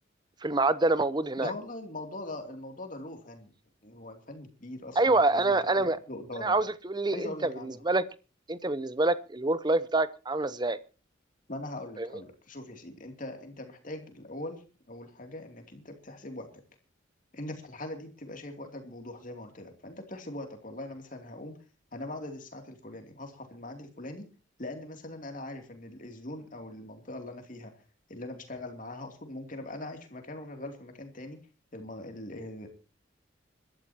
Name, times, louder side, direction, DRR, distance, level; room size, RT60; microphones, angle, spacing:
voice 1, 0.4-1.5 5.0-6.0 6.4-8.0 8.5-10.8 12.0-12.1, right 2 dB, 20° right, 15 dB, 0.7 m, -26 dB
voice 2, 1.4-3.5 3.8-6.6 7.1-7.8 11.5-14.6 14.9-16.5 17.3-21.6 21.9-24.3 24.6-27.7 28.1-31.4 31.7-32.7, left 1 dB, 40° left, 5 dB, 2.7 m, -41 dB
25.5 x 13.0 x 2.9 m, 0.33 s
head